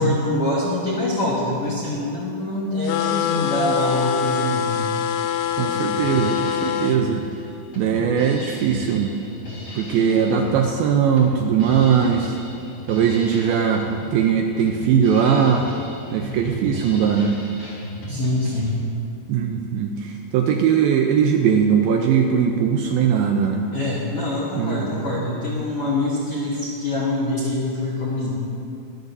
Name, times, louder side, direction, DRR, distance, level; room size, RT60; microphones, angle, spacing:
voice 1, 0.0-4.9 18.1-18.8 23.7-28.3, left 2 dB, 65° left, -6 dB, 1.4 m, -24 dB
sound 1, 2.9-7.0, left 7 dB, 85° left, 2.8 m, -24 dB
Drum kit, 5.4-18.7, equal, 25° left, 3.0 m, -35 dB
voice 2, 5.6-7.2 7.8-9.2 9.8-12.3 12.9-13.9 14.1-15.6 16.1-17.4 19.3-23.6 24.6-25.1, right 7 dB, 85° right, 3 dB, 2.2 m, -20 dB
22.5 x 13.0 x 2.7 m, 2.6 s
omnidirectional pair, 4.9 m